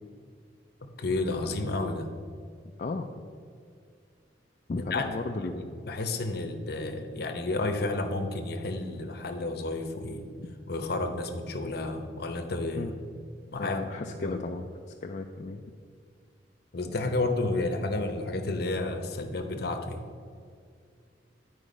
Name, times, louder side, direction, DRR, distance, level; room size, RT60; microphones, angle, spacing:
voice 1, 1.0-2.1 4.9-5.1 5.4-5.5 5.8-10.3 10.7-12.9 13.5-13.8 14.1-14.4 16.7-20.0, left 2 dB, 60° left, 6 dB, 0.8 m, -31 dB
voice 2, 2.8-3.1 4.7-5.7 12.8-12.9 13.6-14.7 15.0-15.6, left 3 dB, 40° left, 3 dB, 0.4 m, -34 dB
9.9 x 4.7 x 5.2 m, 2.2 s
head